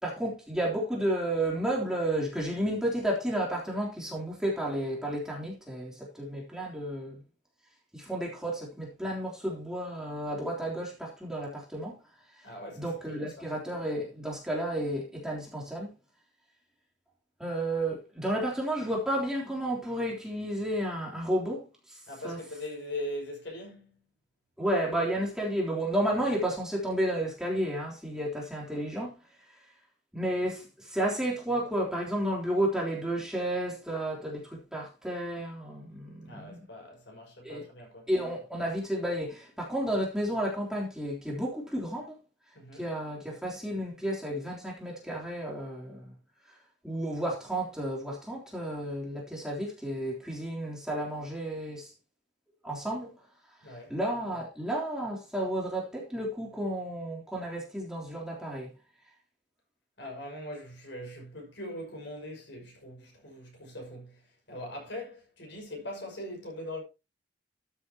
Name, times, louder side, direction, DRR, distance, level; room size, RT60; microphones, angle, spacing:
voice 1, 0.0-7.2 7.9-12.0 12.4-12.5 12.8-15.9 17.4-22.4 24.6-29.1 30.1-36.7 37.4-37.6 38.1-42.2 42.7-46.1 46.8-51.9 52.6-53.1 53.7-58.7, right 1 dB, 5° right, 3.5 m, -32 dB
voice 2, 12.4-13.5 22.1-24.0 36.3-38.1 42.5-43.0 53.6-53.9 60.0-64.2 64.5-66.8, left 1 dB, 70° left, 5.7 m, -41 dB
13.0 x 8.4 x 2.9 m
head